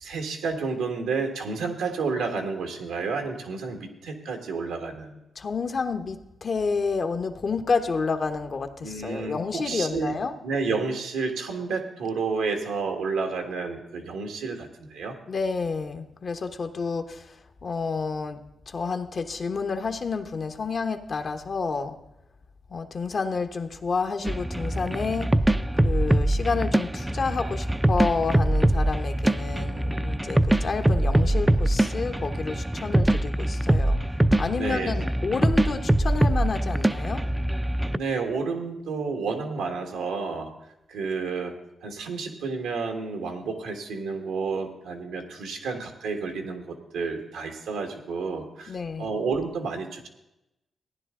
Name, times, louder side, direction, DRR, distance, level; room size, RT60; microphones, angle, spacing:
voice 1, 0.0-5.2 8.8-10.1 10.4-15.1 34.5-34.9 37.9-40.5 40.9-50.1, right 4 dB, 90° right, 4 dB, 1.6 m, -30 dB
voice 2, 5.4-10.3 15.3-22.0 22.7-25.3 25.8-34.0 34.4-37.2 48.7-49.1, left 4 dB, 55° left, 7 dB, 1.1 m, -29 dB
sound 1, 24.2-38.0, right 1 dB, 15° right, 0.5 m, -23 dB
15.0 x 10.0 x 3.8 m, 0.91 s
supercardioid pair, 55°, 0 cm